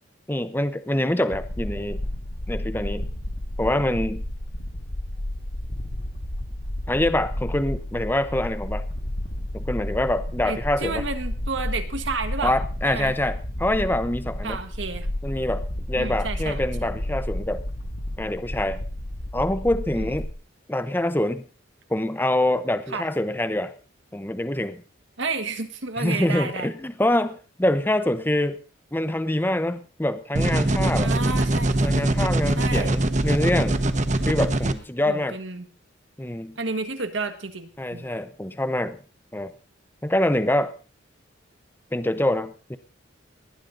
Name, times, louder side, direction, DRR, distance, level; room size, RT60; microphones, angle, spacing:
voice 1, 0.3-2.0 2.5-3.1 3.6-4.2 6.9-8.9 9.5-11.0 12.4-14.6 15.2-17.6 18.2-18.8 19.3-20.3 20.7-21.4 21.9-23.7 24.1-24.8 26.0-28.6 28.9-31.1 31.8-33.8 34.2-35.4 36.2-36.6 37.8-39.0 39.3-39.5 40.0-40.7 41.9-42.8, left 1 dB, 10° left, 12 dB, 0.8 m, -25 dB
sound 1, 1.3-20.3, left 1 dB, 55° left, 1.9 m, -31 dB
voice 2, 10.4-12.6 12.8-13.1 14.4-15.1 15.9-16.9 20.0-20.1 22.9-23.1 25.2-26.7 31.0-32.0 32.5-32.9 35.1-35.7 36.6-38.1, right 3 dB, 70° right, 8 dB, 1.6 m, -31 dB
sound 2, 30.4-34.7, right 1 dB, 40° right, 1.0 m, -22 dB
19.0 x 10.5 x 4.0 m, 0.39 s
head